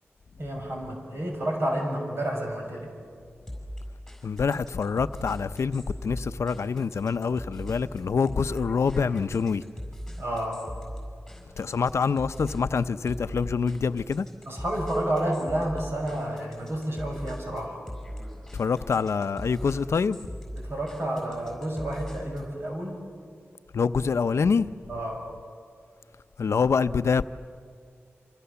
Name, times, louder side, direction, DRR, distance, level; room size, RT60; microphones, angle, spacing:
voice 1, 0.4-2.9 10.2-10.7 14.5-17.8 20.6-23.0 24.9-25.3, right 1 dB, 60° right, 6.7 m, -30 dB
sound 1, 3.5-22.5, equal, 5° left, 6.9 m, -40 dB
voice 2, 4.2-9.6 11.6-14.3 18.5-20.2 23.7-24.7 26.4-27.2, left 5 dB, 80° left, 0.6 m, -26 dB
27.0 x 27.0 x 7.0 m
wide cardioid pair, 110°, 5 cm